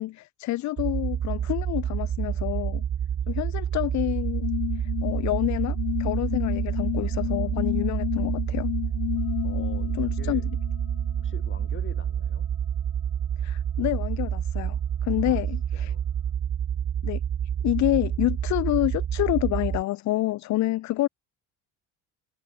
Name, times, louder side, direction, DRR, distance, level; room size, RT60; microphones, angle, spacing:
voice 1, 0.0-2.8 3.3-8.7 9.5-9.6 10.0-10.4 13.4-15.9 17.0-17.2 17.6-21.1, left 16 dB, 45° left, 0.5 m, -28 dB
sound 1, 0.8-19.8, right 9 dB, 30° right, 0.6 m, -28 dB
sound 2, 4.4-11.4, left 39 dB, 80° left, 0.9 m, -32 dB
voice 2, 9.4-10.5 11.2-12.5 15.2-15.4 15.7-16.0, left 5 dB, 30° left, 7.0 m, -45 dB
supercardioid pair, 90°, 39 cm